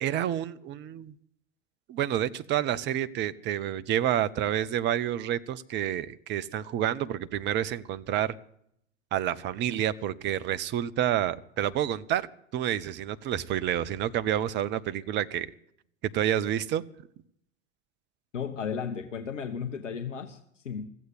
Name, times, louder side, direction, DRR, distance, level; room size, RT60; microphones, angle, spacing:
voice 1, 0.0-1.1 1.9-8.3 9.1-12.3 12.5-15.5 16.1-16.8, right 11 dB, 30° right, 15 dB, 0.7 m, -29 dB
voice 2, 18.3-20.9, left 7 dB, 75° left, 6 dB, 1.0 m, -34 dB
14.5 x 8.0 x 9.6 m, 0.73 s
figure-of-eight pair, 85°, 37 cm